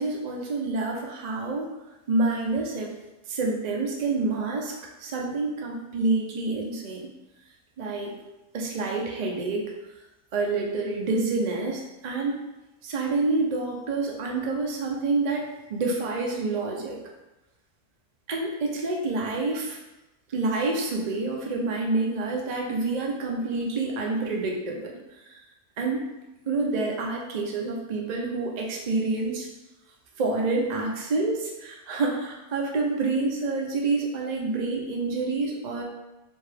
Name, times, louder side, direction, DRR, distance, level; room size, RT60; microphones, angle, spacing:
voice 1, 0.0-1.7 2.1-2.9 3.3-7.1 7.8-8.1 8.5-9.7 10.3-12.4 12.8-17.0 18.3-19.8 20.3-24.9 25.3-25.4 25.8-26.0 26.5-29.5 30.2-35.8, right 3 dB, 55° right, -1 dB, 0.4 m, -28 dB
4.6 x 2.8 x 3.4 m, 1.0 s
omnidirectional pair, 1.6 m